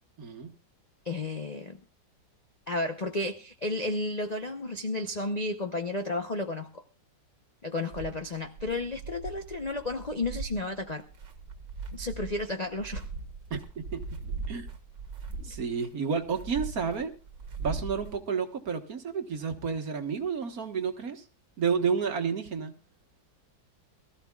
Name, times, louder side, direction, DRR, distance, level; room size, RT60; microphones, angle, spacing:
voice 1, 0.2-0.5 13.5-14.0 14.5-14.7 15.4-17.1 17.6-21.2 21.6-22.7, right 6 dB, 50° right, 5 dB, 1.8 m, -31 dB
voice 2, 1.0-1.8 2.7-6.8 7.6-11.0 11.9-13.1, left 2 dB, 40° left, 6 dB, 0.6 m, -32 dB
sound 1, 7.9-18.2, right 4 dB, 75° right, 2.5 m, -40 dB
22.5 x 14.0 x 2.3 m, 0.31 s
omnidirectional pair, 2.0 m